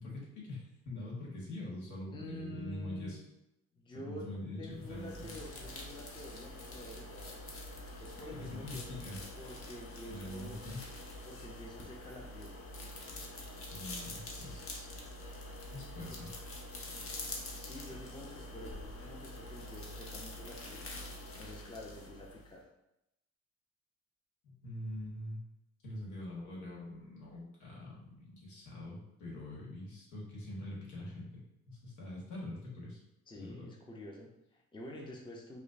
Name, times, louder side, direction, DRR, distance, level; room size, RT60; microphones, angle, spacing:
voice 1, 0.0-3.2 3.9-4.6 4.9-5.4 8.4-9.2 10.1-10.8 13.7-14.9 15.7-16.3 24.4-25.4 25.8-33.0 33.4-33.7, left 1 dB, 80° left, -4 dB, 1.4 m, -44 dB
voice 2, 2.1-3.2 3.7-4.3 4.6-7.4 8.0-9.1 9.4-10.7 11.3-12.6 16.1-16.2 17.5-20.9 21.4-22.7 33.3-35.6, left 1 dB, 15° left, 0 dB, 0.6 m, -48 dB
sound 1, 4.7-22.6, left 1 dB, 45° left, 0.9 m, -46 dB
4.9 x 2.1 x 2.5 m, 0.86 s
cardioid pair, 90°, 30 cm